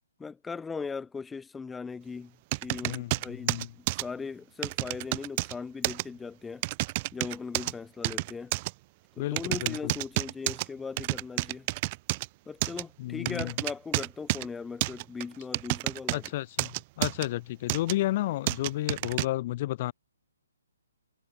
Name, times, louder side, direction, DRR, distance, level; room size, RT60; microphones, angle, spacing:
voice 1, 0.2-2.4 2.6-6.6 7.1-8.5 9.2-11.7 12.5-16.3, left 5 dB, 5° left, 3.6 m, -39 dB
sound 1, 2.5-4.1 4.6-5.5 5.8-6.0 6.6-7.7 8.0-8.7 9.4-10.7 11.0-12.3 12.6-12.8 13.3-14.5 14.8-16.3 16.6-17.3 17.7-17.9 18.5-19.3, right 23 dB, 25° right, 1.1 m, -30 dB
voice 2, 2.8-3.7 9.2-9.9 13.0-13.5 16.1-19.9, left 16 dB, 30° left, 2.5 m, -32 dB
figure-of-eight pair, 135°, 0 cm